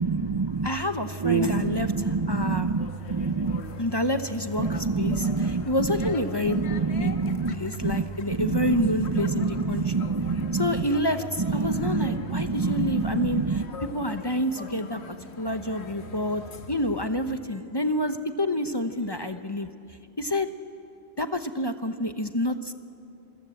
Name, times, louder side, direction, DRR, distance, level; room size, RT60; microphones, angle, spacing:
voice 1, 0.0-0.7 1.2-3.6 4.6-5.7 6.0-6.1 6.4-8.0 8.3-10.9 11.4-13.6, right 4 dB, 30° right, 7 dB, 0.6 m, -27 dB
voice 2, 0.6-2.7 3.8-6.6 7.0-7.1 7.5-10.0 10.5-13.6 13.9-15.0 15.4-16.4 16.7-19.7 20.2-20.5 21.2-22.7, left 1 dB, 25° left, 8 dB, 0.8 m, -28 dB
sound 1, 1.6-17.3, left 5 dB, 75° left, 1.5 m, -43 dB
27.0 x 24.5 x 7.8 m, 2.6 s
omnidirectional pair, 1.1 m